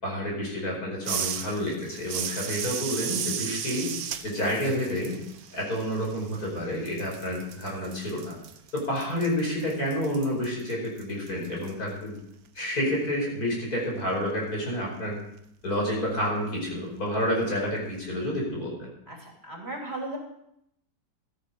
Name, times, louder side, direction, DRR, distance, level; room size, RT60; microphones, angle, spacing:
voice 1, 0.0-3.9 4.2-5.2 5.5-8.4 8.7-12.1 12.6-15.2 15.6-18.9, equal, 55° left, -2 dB, 5.6 m, -29 dB
sound 1, 1.0-6.6 6.9-11.7, right 8 dB, 60° right, 1.2 m, -35 dB
voice 2, 19.1-20.2, right 2 dB, 35° right, 0 dB, 3.2 m, -36 dB
14.5 x 12.5 x 5.3 m, 0.75 s
omnidirectional pair, 1.9 m